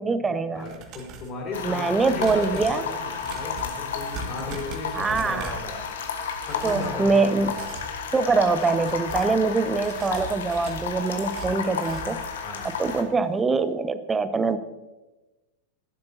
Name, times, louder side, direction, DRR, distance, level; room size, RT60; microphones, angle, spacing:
voice 1, 0.0-0.7 1.6-2.8 4.9-5.6 6.6-7.5 8.1-12.2 12.8-14.6, right 4 dB, 15° right, 13 dB, 0.7 m, -24 dB
voice 2, 0.5-5.8 6.4-7.6 12.4-12.7, left 3 dB, 35° left, 0 dB, 3.9 m, -35 dB
sound 1, 0.5-1.4 2.0-5.7 6.3-7.0 7.4-7.9 8.4-9.4 9.8-12.2 12.6-12.7 13.1-13.2, right 4 dB, 35° right, 2.0 m, -40 dB
sound 2, 1.5-13.0, left 6 dB, 60° left, 1.4 m, -33 dB
16.0 x 11.5 x 2.8 m, 1.1 s
figure-of-eight pair, 90°, 0 cm